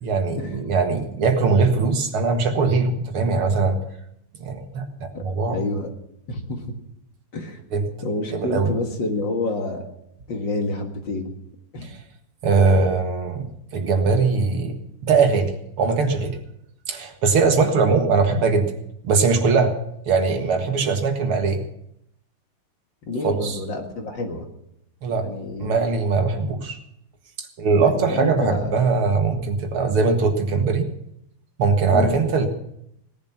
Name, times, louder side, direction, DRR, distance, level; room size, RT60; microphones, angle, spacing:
voice 1, 0.0-3.8 4.4-4.9 5.2-5.6 7.7-7.9 8.3-8.7 11.8-12.0 12.4-13.5 13.7-14.7 15.0-15.5 15.8-16.4 16.9-18.7 19.0-19.7 20.1-21.6 23.2-23.6 25.0-25.3 25.6-26.8 27.6-30.8 31.6-32.5, right 4 dB, 80° right, 5 dB, 2.6 m, -20 dB
voice 2, 5.5-5.9 6.3-6.7 7.3-7.6 8.0-9.8 10.3-11.3 11.7-11.9 23.1-24.5 25.1-25.8 27.8-28.7 31.9-32.1, left 2 dB, 60° left, 3 dB, 2.5 m, -28 dB
17.5 x 11.0 x 5.9 m, 0.76 s
omnidirectional pair, 2.4 m